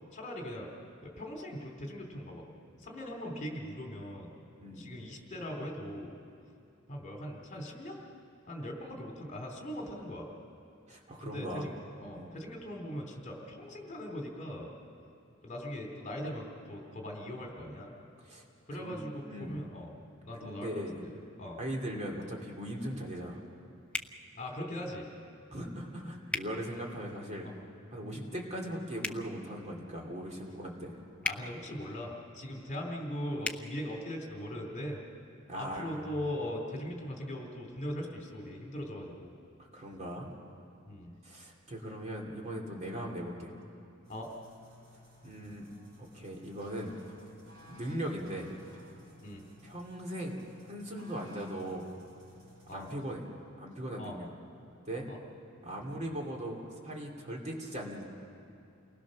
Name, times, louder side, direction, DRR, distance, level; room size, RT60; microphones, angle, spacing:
voice 1, 0.1-0.7 1.0-2.5 2.8-4.3 4.7-6.1 6.9-8.0 8.5-10.3 11.2-14.7 15.4-17.9 18.7-19.9 20.2-20.7 21.0-21.1 21.4-21.6 24.4-25.1 27.4-27.5 31.2-35.0 35.5-39.3 40.9-41.1 42.9-43.0 44.1-44.3 49.2-49.4 52.7-52.9 54.0-54.2 55.1-55.2, equal, 35° left, 1 dB, 3.0 m, -40 dB
voice 2, 10.9-11.7 12.1-12.3 18.2-18.4 18.7-19.0 19.3-19.7 20.4-21.0 21.6-23.4 25.5-27.5 27.9-31.0 35.5-36.1 39.6-40.3 41.2-43.6 45.2-45.7 46.0-46.9 47.7-48.5 49.6-50.4 50.7-51.9 52.7-53.2 53.6-54.3 54.8-55.1 55.6-58.0, right 1 dB, 35° right, -1 dB, 2.8 m, -39 dB
sound 1, 23.9-24.1 26.3-26.5 29.0-29.2 31.2-31.4 33.4-33.6, left 3 dB, 5° left, 0.6 m, -34 dB
sound 2, 44.0-53.0, equal, 50° right, 6.5 m, -58 dB
29.0 x 20.0 x 6.4 m, 2.6 s
head